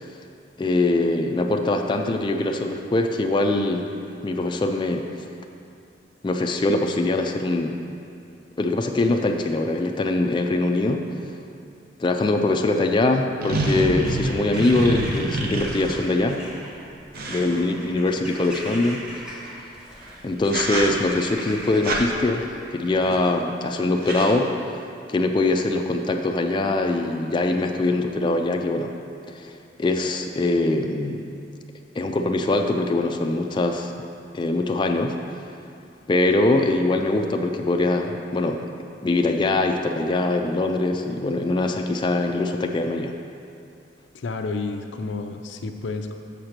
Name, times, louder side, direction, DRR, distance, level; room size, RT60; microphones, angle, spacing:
voice 1, 0.6-3.9 4.2-5.1 6.2-7.8 8.6-11.0 12.0-16.4 17.3-19.0 20.2-24.5 25.1-28.9 29.3-29.5 29.8-31.3 32.0-33.9 34.3-35.2 36.1-38.6 39.0-43.1, left 2 dB, 25° left, 3 dB, 0.4 m, -22 dB
sound 1, 13.4-16.2 17.1-18.5 19.9-20.1 20.4-21.2 21.8-22.0 23.0-23.4 23.7-23.8 24.0-24.3, right 2 dB, 55° right, 0.8 m, -28 dB
Bird vocalization bird call bird song / Crow, 13.5-23.4, equal, 5° right, 1.0 m, -41 dB
voice 2, 44.1-46.1, left 3 dB, 90° left, 6 dB, 0.5 m, -30 dB
6.7 x 4.4 x 6.4 m, 2.6 s
head